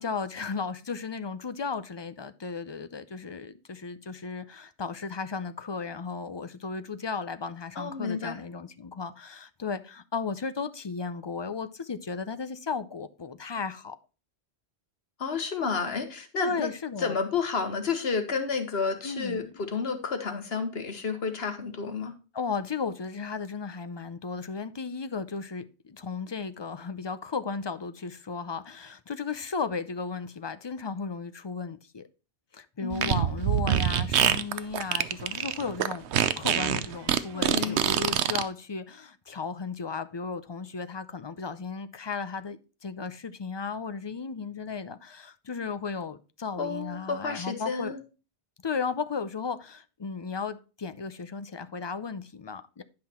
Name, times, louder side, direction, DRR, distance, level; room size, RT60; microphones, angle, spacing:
voice 1, 0.0-14.0 16.4-17.2 19.0-19.5 22.3-32.1 32.5-36.0 36.4-47.9 48.6-52.8, left 5 dB, 35° left, 0.4 m, -35 dB
voice 2, 7.7-8.4 15.2-16.7 17.0-22.1 32.8-33.1 37.3-38.0 46.6-48.0, left 5 dB, 65° left, 1.6 m, -31 dB
Fart, 32.9-38.4, right 10 dB, 80° right, 1.0 m, -25 dB
10.5 x 5.7 x 4.3 m
omnidirectional pair, 1.1 m